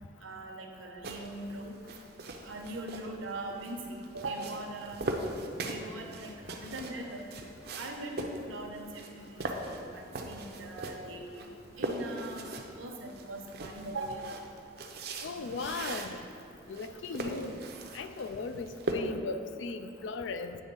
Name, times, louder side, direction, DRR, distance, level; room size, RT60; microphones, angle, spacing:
voice 1, 0.2-1.8 2.4-5.0 5.6-7.2 7.7-11.5 11.8-14.3, right 2 dB, 80° right, 2 dB, 0.9 m, -41 dB
sound 1, 1.0-18.9, right 2 dB, 50° right, 0.6 m, -41 dB
voice 2, 15.2-16.2 16.7-17.6 17.9-20.6, left 4 dB, 70° left, 9 dB, 0.4 m, -37 dB
8.8 x 3.4 x 5.4 m, 2.6 s
head